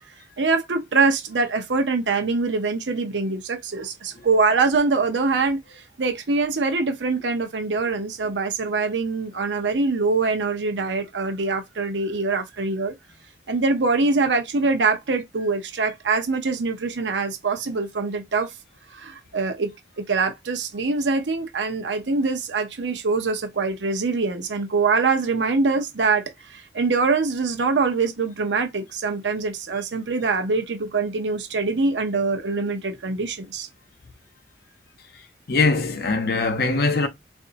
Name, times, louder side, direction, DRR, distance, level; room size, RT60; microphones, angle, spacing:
voice 1, 0.4-12.9 13.5-18.5 18.9-19.7 20.0-33.7, right 4 dB, 90° right, 0.7 m, -24 dB
voice 2, 35.5-37.1, left 3 dB, 60° left, 0.7 m, -21 dB
3.9 x 2.6 x 2.5 m
head